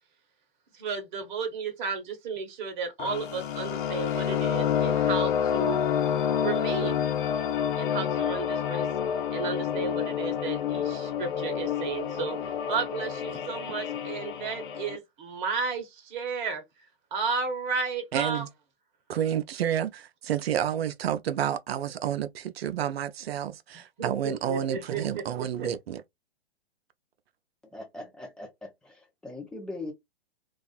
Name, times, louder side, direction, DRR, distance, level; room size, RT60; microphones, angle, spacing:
voice 1, 0.7-5.8 6.4-7.0 7.8-8.9 9.3-12.4 12.7-16.6 17.1-18.4 24.0-25.7, right 5 dB, 45° right, 0.9 m, -33 dB
sound 1, 3.0-15.0, left 8 dB, 55° left, 0.6 m, -28 dB
voice 2, 18.1-18.5 19.1-26.0, right 10 dB, 70° right, 0.5 m, -30 dB
voice 3, 27.7-29.9, left 2 dB, ahead, 0.3 m, -40 dB
2.4 x 2.3 x 2.3 m
hypercardioid pair, 120°, 31 cm